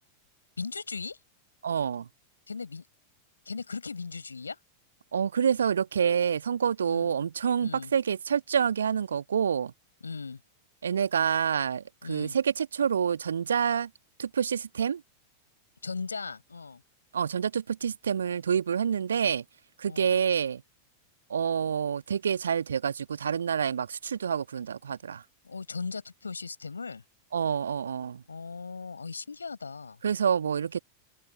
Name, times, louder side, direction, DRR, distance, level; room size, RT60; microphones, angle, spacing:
voice 1, 0.6-1.2 2.5-2.8 3.4-4.6 6.8-7.1 7.6-7.9 10.0-10.4 12.0-12.4 15.8-16.8 19.9-20.2 25.4-27.0 28.3-30.0, left 4 dB, 75° left, 4.9 m, -38 dB
voice 2, 1.6-2.1 5.1-9.7 10.8-13.9 14.2-15.0 17.1-19.4 19.8-20.6 21.3-25.2 27.3-28.2 30.0-30.8, right 7 dB, 70° right, 1.7 m, -27 dB
open air
figure-of-eight pair, 90°, 0 cm